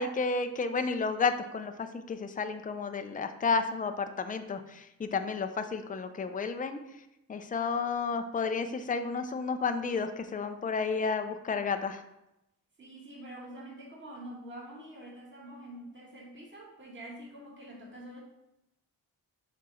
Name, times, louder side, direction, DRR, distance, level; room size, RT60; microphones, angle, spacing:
voice 1, 0.0-6.8 7.3-12.0, left 4 dB, 20° left, 8 dB, 0.5 m, -31 dB
voice 2, 12.8-18.2, right 1 dB, 30° right, -4 dB, 2.2 m, -46 dB
6.2 x 3.6 x 4.3 m, 0.87 s
cardioid pair, 65°, 38 cm